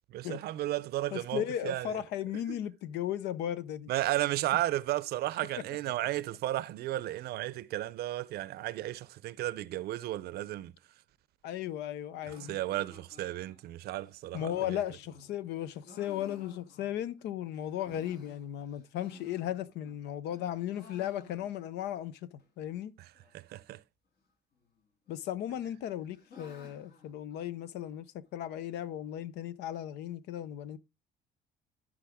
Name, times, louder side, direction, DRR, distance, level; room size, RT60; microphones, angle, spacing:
voice 1, 0.1-2.0 2.5-2.6 3.9-10.7 12.5-14.8 23.0-23.1 23.3-23.8, right 15 dB, 70° right, 0.6 m, -34 dB
voice 2, 1.1-3.9 11.4-12.6 14.3-22.2 22.6-22.9 25.1-28.0 28.3-30.8, left 11 dB, 80° left, 0.7 m, -36 dB
sound 1, 12.2-17.2 17.6-20.0 20.3-21.8 22.1-22.2 22.4-22.5 23.1-23.6 24.6-25.2 25.6-28.0, left 3 dB, 65° left, 2.5 m, -55 dB
13.5 x 5.0 x 3.5 m
cardioid pair, 110°, 17 cm